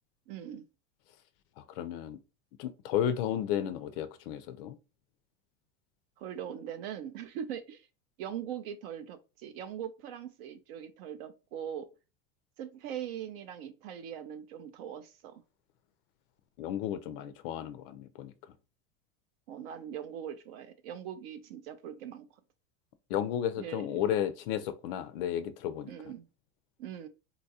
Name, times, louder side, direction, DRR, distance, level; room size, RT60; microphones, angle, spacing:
voice 1, 0.3-0.7 6.2-7.9 8.2-11.9 12.6-15.4 19.5-22.3 23.6-23.8 25.9-26.3 26.8-27.1, right 9 dB, 55° right, 0.5 m, -41 dB
voice 2, 1.6-2.2 2.6-4.8 16.6-18.3 23.1-25.9, left 10 dB, 55° left, 0.4 m, -33 dB
3.9 x 2.3 x 2.7 m
supercardioid pair, 145°, 35 cm